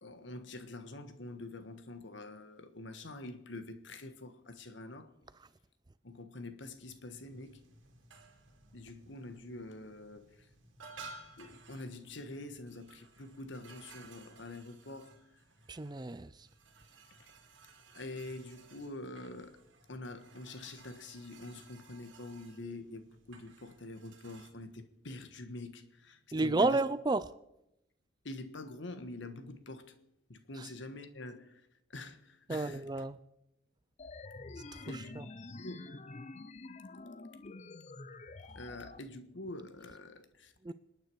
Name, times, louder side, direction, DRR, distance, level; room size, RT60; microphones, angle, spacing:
voice 1, 0.0-5.2 6.0-7.6 8.7-10.5 11.4-15.4 17.9-19.6 19.9-26.8 28.2-30.0 30.3-33.0 34.8-36.0 38.5-40.5, left 2 dB, 70° left, 1.4 m, -46 dB
sound 1, 6.7-24.5, right 3 dB, 80° right, 2.4 m, -57 dB
voice 2, 15.7-16.3 26.3-27.2 32.5-33.2 40.7-40.8, right 2 dB, 20° right, 0.4 m, -30 dB
sound 2, 34.0-39.0, left 3 dB, 35° left, 0.6 m, -47 dB
26.5 x 9.3 x 4.8 m
head